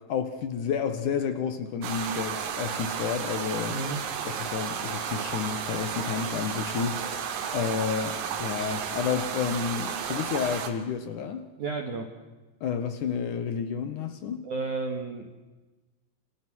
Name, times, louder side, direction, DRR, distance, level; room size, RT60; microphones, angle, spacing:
voice 1, 0.1-3.8 4.2-7.0 7.5-11.4 12.6-14.4, left 7 dB, 85° left, 1.7 m, -30 dB
sound 1, 1.8-10.7, right 7 dB, 80° right, 5.2 m, -33 dB
voice 2, 3.7-4.0 11.6-12.1 14.4-15.4, right 3 dB, 55° right, 2.4 m, -32 dB
29.0 x 27.0 x 6.2 m
omnidirectional pair, 6.0 m